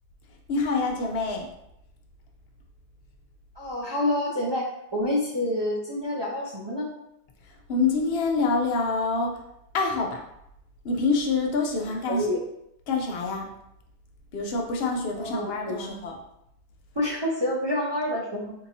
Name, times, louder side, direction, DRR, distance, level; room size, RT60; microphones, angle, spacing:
voice 1, 0.5-1.5 7.7-9.4 9.7-10.2 10.8-12.3 12.9-13.5 14.3-16.2, left 3 dB, 70° left, 1 dB, 0.8 m, -26 dB
voice 2, 3.6-6.9 11.8-12.4 15.2-16.0 17.0-18.5, left 1 dB, 35° right, -5 dB, 0.4 m, -28 dB
3.7 x 2.8 x 2.6 m, 0.80 s
omnidirectional pair, 1.1 m